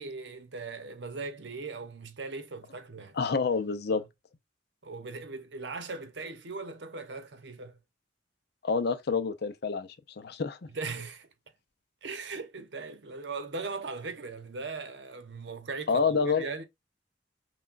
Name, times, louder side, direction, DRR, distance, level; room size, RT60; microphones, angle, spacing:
voice 1, 0.0-3.2 3.9-4.0 4.8-7.8 10.7-11.3 12.0-16.6, right 4 dB, 70° right, 0.9 m, -39 dB
voice 2, 3.2-4.0 8.6-9.9 10.2-10.6 15.9-16.4, left 5 dB, 60° left, 0.6 m, -27 dB
5.9 x 2.3 x 2.5 m
head